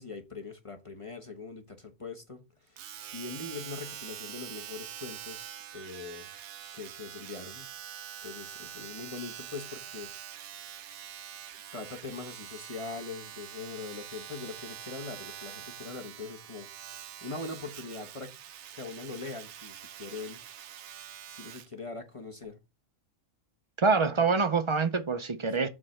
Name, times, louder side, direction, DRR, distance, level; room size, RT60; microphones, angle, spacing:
voice 1, 0.0-6.3 6.7-7.7 8.2-10.1 11.7-16.7 17.0-18.3 18.7-20.4 21.3-22.6, left 4 dB, 30° left, 1.0 m, -42 dB
Domestic sounds home sounds, 2.8-21.7 22.4-22.5, right 10 dB, 75° right, 0.9 m, -45 dB
voice 2, 23.8-25.7, right 4 dB, 40° right, 0.4 m, -25 dB
7.2 x 3.3 x 6.3 m
omnidirectional pair, 1.2 m